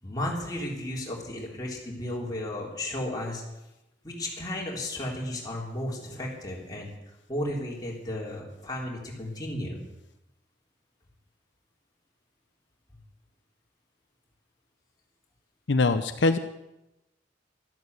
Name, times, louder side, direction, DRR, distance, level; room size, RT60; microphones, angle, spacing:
voice 1, 0.0-3.4 4.0-6.9 7.3-9.8, left 1 dB, 20° left, -3 dB, 3.6 m, -34 dB
voice 2, 15.7-16.4, left 3 dB, 75° left, 8 dB, 0.7 m, -22 dB
13.0 x 11.5 x 8.2 m, 0.93 s
head